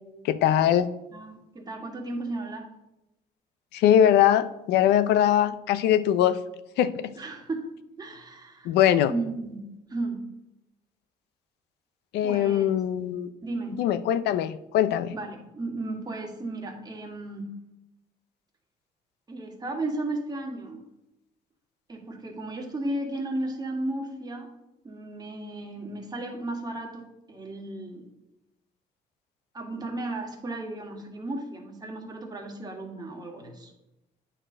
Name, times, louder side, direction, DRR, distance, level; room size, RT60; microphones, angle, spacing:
voice 1, 0.2-0.9 3.7-6.4 6.8-7.1 8.6-9.1 12.1-13.3 13.8-15.1, left 10 dB, 80° left, 13 dB, 0.6 m, -22 dB
voice 2, 1.1-2.7 7.2-7.7 8.0-8.7 9.1-9.6 9.9-10.2 12.2-12.7 13.4-13.8 15.1-17.5 19.3-20.8 21.9-24.5 24.8-28.1 29.5-33.7, right 2 dB, 25° right, 1 dB, 1.8 m, -34 dB
8.9 x 4.4 x 5.0 m, 0.90 s
cardioid pair, 110°, 17 cm